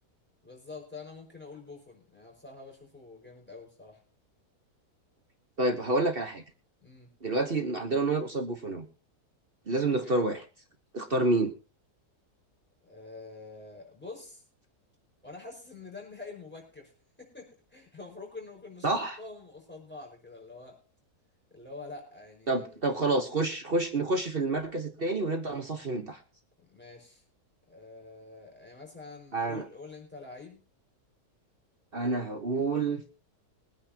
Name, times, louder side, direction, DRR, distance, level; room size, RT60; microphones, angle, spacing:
voice 1, 0.4-4.0 6.8-7.1 9.7-10.3 12.8-14.4 15.2-16.9 17.2-20.8 21.5-22.9 26.6-27.2 27.7-30.6, left 3 dB, 5° left, -1 dB, 5.4 m, -46 dB
voice 2, 5.6-6.4 7.2-8.8 9.7-10.4 10.9-11.5 18.8-19.2 22.5-26.2 29.3-29.6 31.9-33.0, right 2 dB, 40° right, 5 dB, 1.3 m, -28 dB
22.5 x 9.7 x 2.9 m, 0.35 s
omnidirectional pair, 1.7 m